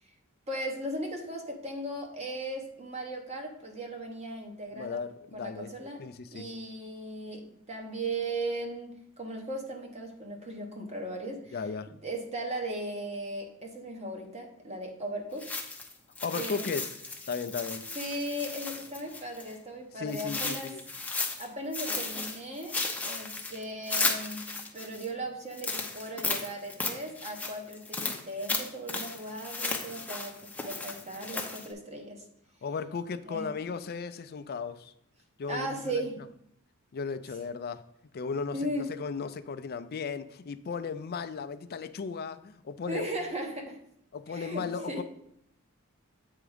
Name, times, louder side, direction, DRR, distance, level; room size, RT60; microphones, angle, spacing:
voice 1, 0.5-5.0 5.3-6.0 6.3-11.6 12.0-15.5 16.3-16.7 17.9-20.7 21.4-22.8 23.0-32.2 33.3-33.5 35.5-36.2 38.5-38.9 42.9-43.8 44.3-45.0, right 1 dB, 30° right, 1.1 m, -37 dB
voice 2, 4.7-5.7 6.0-6.5 11.5-11.9 16.2-16.9 17.3-17.9 20.0-20.8 32.6-34.9 35.4-36.2 36.9-37.8 38.1-43.1 44.1-45.0, left 5 dB, 45° left, 0.4 m, -36 dB
sound 1, 15.4-19.5 20.1-21.5 21.7-25.1 25.5-31.7, left 3 dB, 5° left, 0.7 m, -35 dB
7.9 x 3.7 x 5.0 m
head